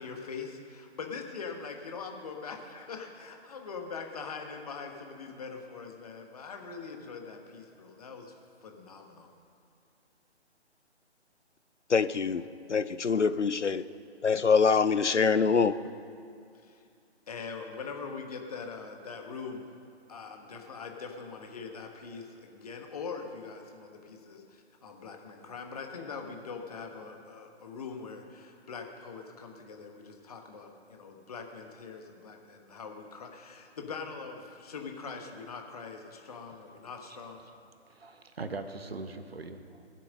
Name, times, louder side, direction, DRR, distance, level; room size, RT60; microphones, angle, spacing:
voice 1, 0.0-9.3 16.6-16.8 17.3-19.7 20.1-37.4, left 5 dB, 35° left, 3 dB, 1.3 m, -42 dB
voice 2, 11.9-12.4 12.7-13.8 14.2-15.8, left 5 dB, 90° left, 15 dB, 0.6 m, -24 dB
voice 3, 37.9-39.9, right 3 dB, 60° right, 8 dB, 1.2 m, -41 dB
20.0 x 7.6 x 6.4 m, 2.4 s
figure-of-eight pair, 140°, 34 cm